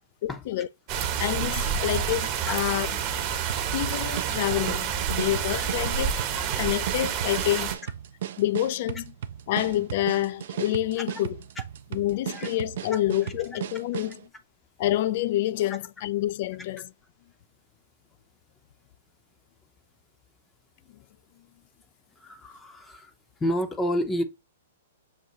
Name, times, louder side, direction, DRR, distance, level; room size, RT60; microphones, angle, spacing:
voice 1, 0.2-0.7 1.2-2.9 3.7-6.1 6.6-7.7 8.4-9.0 9.5-11.4 11.9-14.2 14.8-16.9, left 14 dB, 50° left, 0.3 m, -27 dB
sound 1, 0.9-7.8, right 8 dB, 40° right, 0.8 m, -28 dB
sound 2, 3.5-14.2, right 10 dB, 60° right, 0.4 m, -36 dB
voice 2, 13.2-13.6 22.2-23.1 23.4-24.2, equal, 15° left, 0.6 m, -30 dB
6.5 x 2.2 x 2.9 m
hypercardioid pair, 120°, 0 cm